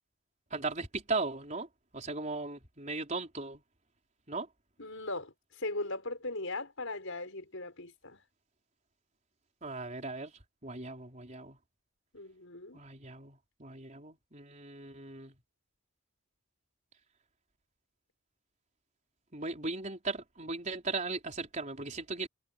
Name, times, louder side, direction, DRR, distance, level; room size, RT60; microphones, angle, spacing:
voice 1, 0.5-1.7 1.9-3.6 4.3-4.5 9.6-10.3 10.6-11.6 12.7-15.3 19.3-22.3, right 3 dB, 35° right, 4.7 m, -37 dB
voice 2, 4.8-8.2 12.1-12.8, left 2 dB, 65° left, 6.6 m, -39 dB
head